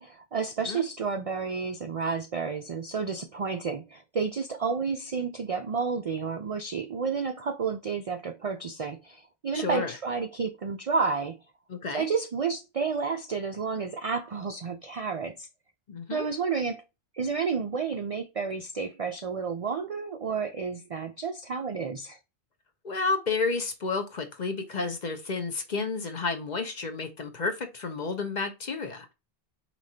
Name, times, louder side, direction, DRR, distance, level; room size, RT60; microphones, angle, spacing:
voice 1, 0.0-11.4 11.9-15.5 16.1-16.8 17.1-22.2, right 5 dB, 55° right, 0.4 m, -31 dB
voice 2, 9.5-9.9 11.7-12.1 15.9-16.3 22.8-29.1, left 4 dB, 45° left, 0.8 m, -31 dB
4.9 x 2.9 x 2.7 m
omnidirectional pair, 1.1 m